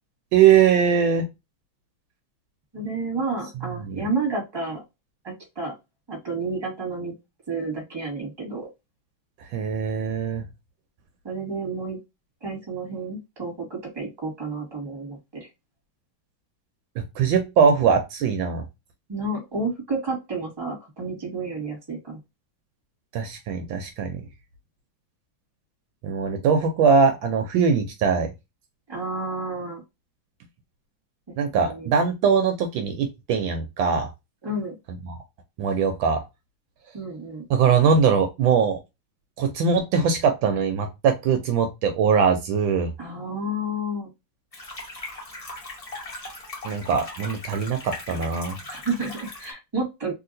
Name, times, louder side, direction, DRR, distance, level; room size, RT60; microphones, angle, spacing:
voice 1, 0.3-1.3 3.8-4.0 9.5-10.4 17.0-18.6 23.1-24.2 26.0-28.3 31.4-34.1 35.0-35.1 35.6-36.2 37.5-38.8 39.4-42.9 46.6-48.6, right 6 dB, 75° right, 6 dB, 1.3 m, -21 dB
voice 2, 2.7-4.8 5.2-5.7 6.1-7.1 7.5-8.7 11.2-12.0 12.4-15.5 19.1-22.2 28.9-29.8 31.6-31.9 34.4-34.7 36.9-37.4 43.0-44.1 48.7-50.1, right 2 dB, 15° right, 0 dB, 1.3 m, -30 dB
sound 1, 44.5-49.5, left 2 dB, 45° left, 0.4 m, -38 dB
3.1 x 2.8 x 2.6 m, 0.22 s
omnidirectional pair, 2.2 m